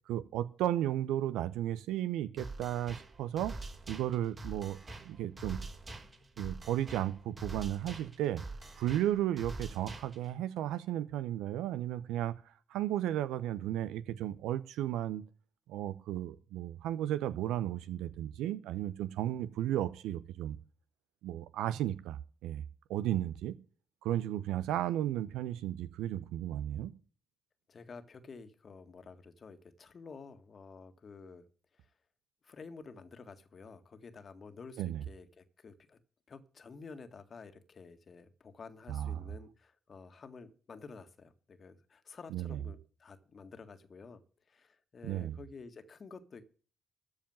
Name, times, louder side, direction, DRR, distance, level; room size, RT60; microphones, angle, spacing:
voice 1, 0.1-3.5 3.9-5.6 6.4-8.4 8.8-12.3 12.7-15.2 15.7-20.6 21.2-22.6 22.9-23.6 24.0-26.9 34.8-35.0 38.9-39.2 42.3-42.6 45.0-45.4, right 12 dB, 75° right, 0.7 m, -34 dB
sound 1, 2.4-10.4, right 2 dB, 45° right, 4.4 m, -45 dB
voice 2, 27.7-31.5 31.7-31.9 32.4-36.0 36.3-44.2 44.5-46.4, left 4 dB, 50° left, 1.8 m, -51 dB
14.0 x 4.9 x 9.1 m
hypercardioid pair, 40°, 0 cm